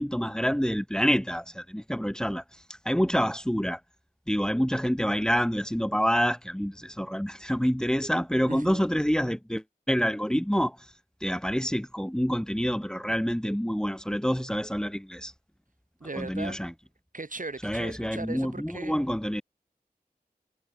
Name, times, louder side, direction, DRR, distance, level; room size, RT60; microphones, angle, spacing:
voice 1, 0.0-2.4 2.9-3.8 4.3-10.8 11.2-15.3 16.2-16.7 17.6-19.4, equal, 5° left, 2.0 m, -27 dB
voice 2, 8.5-8.9 16.0-16.6 17.1-19.0, right 3 dB, 60° right, 1.6 m, -38 dB
wide cardioid pair, 50°, 16 cm